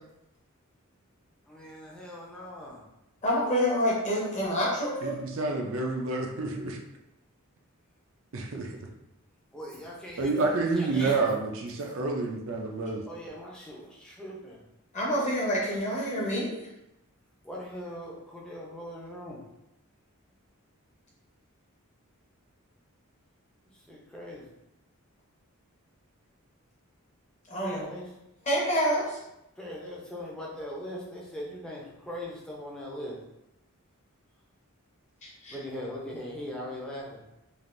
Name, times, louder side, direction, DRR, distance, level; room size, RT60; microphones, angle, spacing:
voice 1, 1.5-2.8 9.5-11.3 13.1-14.6 17.4-19.4 23.9-24.4 27.6-28.1 29.6-33.2 35.5-37.2, equal, 5° left, -4 dB, 0.5 m, -40 dB
voice 2, 3.2-5.1 14.9-16.5 27.5-27.9 28.4-29.2 35.2-35.6, equal, 30° left, -4 dB, 0.9 m, -27 dB
voice 3, 5.0-6.8 8.3-8.7 10.2-13.0, right 3 dB, 60° right, 1 dB, 0.5 m, -29 dB
3.3 x 2.5 x 2.5 m, 0.88 s
head